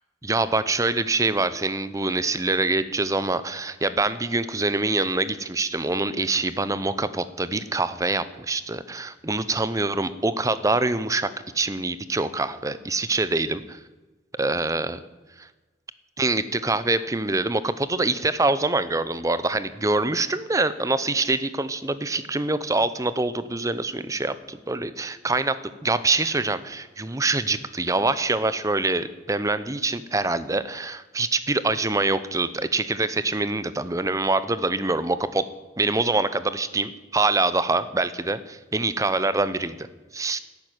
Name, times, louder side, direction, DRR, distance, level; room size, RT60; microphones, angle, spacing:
voice 1, 0.2-13.8 14.4-15.0 15.4-15.5 16.2-35.5 35.8-39.9 40.1-40.4, right 2 dB, 20° right, 14 dB, 0.7 m, -25 dB
12.5 x 11.0 x 9.4 m, 1.2 s
head